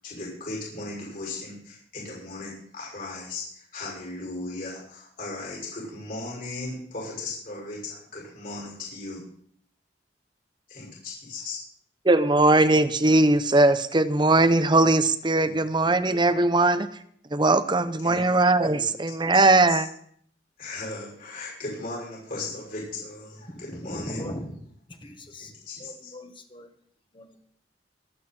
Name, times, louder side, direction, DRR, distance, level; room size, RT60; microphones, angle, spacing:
voice 1, 0.0-9.2 10.7-11.6 15.4-15.5 15.8-16.0 18.0-18.3 18.6-18.8 19.3-19.8 20.6-24.3 25.0-26.1, left 2 dB, 55° left, -4 dB, 6.4 m, -37 dB
voice 2, 12.0-16.9 17.3-19.9, right 2 dB, 25° right, 12 dB, 0.8 m, -20 dB
voice 3, 23.5-24.5 24.9-25.5 25.8-26.7 27.1-27.4, equal, 30° left, 6 dB, 1.7 m, -39 dB
24.5 x 8.4 x 4.4 m, 0.62 s
head